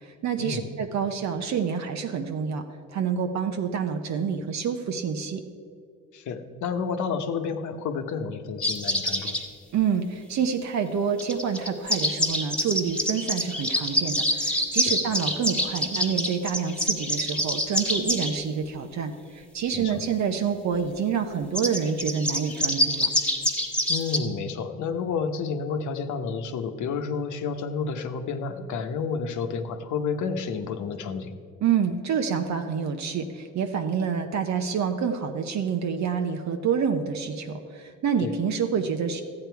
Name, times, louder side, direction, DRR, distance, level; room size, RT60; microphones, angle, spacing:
voice 1, 0.2-2.6 2.9-5.4 9.7-23.1 31.6-39.2, right 7 dB, 65° right, 5 dB, 0.8 m, -27 dB
voice 2, 6.1-9.4 14.9-15.0 19.7-20.0 23.9-31.3 38.2-38.4, left 5 dB, 75° left, 7 dB, 1.0 m, -30 dB
sound 1, 8.6-9.4 11.2-18.3 21.6-24.2, equal, 5° left, 1.4 m, -26 dB
13.0 x 8.8 x 4.6 m, 2.3 s
cardioid pair, 90°, 30 cm